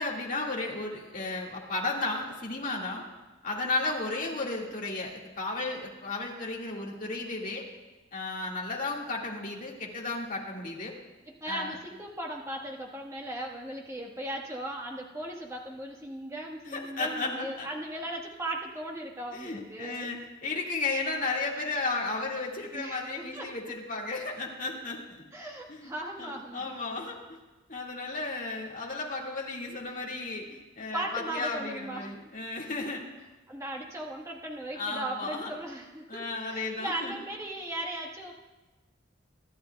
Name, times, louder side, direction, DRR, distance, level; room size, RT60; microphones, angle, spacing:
voice 1, 0.0-3.1 3.4-7.7 8.1-10.9 11.5-11.8 16.7-17.7 19.3-25.2 25.7-25.9 26.2-27.4 27.7-33.0 34.8-35.5 36.1-37.2, left 3 dB, 40° left, -2 dB, 1.9 m, -34 dB
voice 2, 11.3-20.1 22.7-23.5 25.3-26.7 30.9-32.2 33.5-38.3, right 1 dB, 15° right, -1 dB, 1.3 m, -37 dB
24.0 x 11.5 x 2.3 m, 1.1 s
head